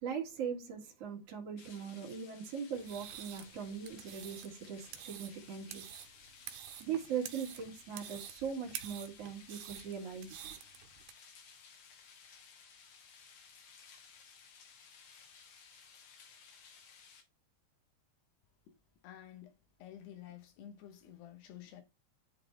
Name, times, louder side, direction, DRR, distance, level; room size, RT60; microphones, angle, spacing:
voice 1, 0.0-5.8 6.8-10.4, right 7 dB, 45° right, 2.5 m, -40 dB
sound 1, 1.6-17.2, left 6 dB, 70° left, 2.9 m, -58 dB
sound 2, 2.8-11.1, right 12 dB, 85° right, 2.8 m, -49 dB
voice 2, 19.0-19.5 19.8-21.8, left 11 dB, 85° left, 3.2 m, -51 dB
10.5 x 4.1 x 3.3 m
omnidirectional pair, 4.7 m